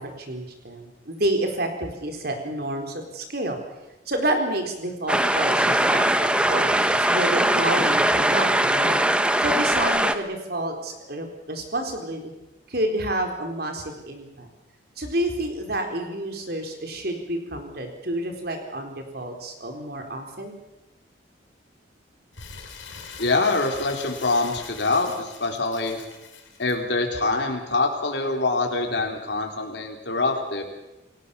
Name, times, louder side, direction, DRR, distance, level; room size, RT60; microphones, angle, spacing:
voice 1, 0.0-3.6 4.1-9.1 9.4-12.3 12.7-14.5 15.0-20.6, right 1 dB, 50° right, 4 dB, 4.2 m, -29 dB
sound 1, 5.1-10.1, right 1 dB, 5° right, 1.0 m, -21 dB
Crumpling crinkling, 22.3-26.8, left 6 dB, 80° left, 4.5 m, -42 dB
voice 2, 23.2-26.0 26.6-30.6, left 3 dB, 60° left, 2 dB, 4.1 m, -25 dB
28.5 x 17.5 x 7.1 m, 1.0 s
head